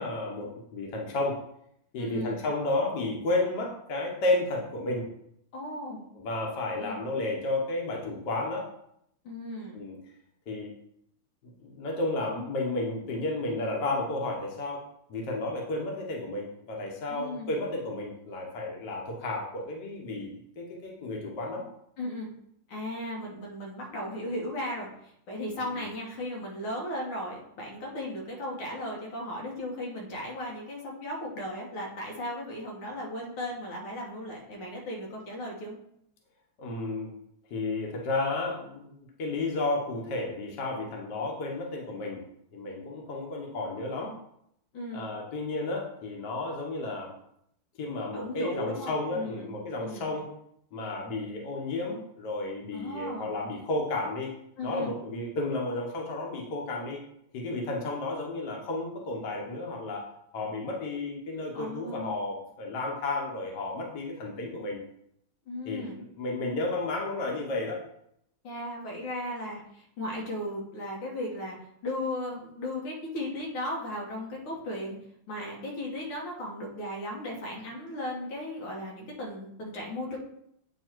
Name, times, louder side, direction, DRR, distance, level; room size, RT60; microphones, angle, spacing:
voice 1, 0.0-1.4 1.9-5.1 6.1-8.7 9.7-10.0 10.5-10.8 11.4-14.8 15.1-20.3 20.6-21.6 25.6-25.8 36.6-37.1 37.5-42.2 42.5-44.2 44.9-47.1 47.8-50.3 50.7-54.3 54.6-57.0 57.3-60.1 60.3-64.8 65.6-67.8, left 2 dB, 55° left, -1 dB, 1.6 m, -32 dB
voice 2, 2.0-2.4 5.5-6.0 6.8-7.1 9.2-9.8 17.1-17.5 22.0-22.3 22.7-35.8 44.7-45.1 48.1-49.5 49.8-50.1 52.7-53.3 54.6-55.0 61.5-62.2 65.5-66.0 68.4-71.6 71.8-75.0 75.3-80.2, left 1 dB, 85° left, -1 dB, 2.3 m, -36 dB
8.9 x 3.1 x 4.5 m, 0.73 s
omnidirectional pair, 2.3 m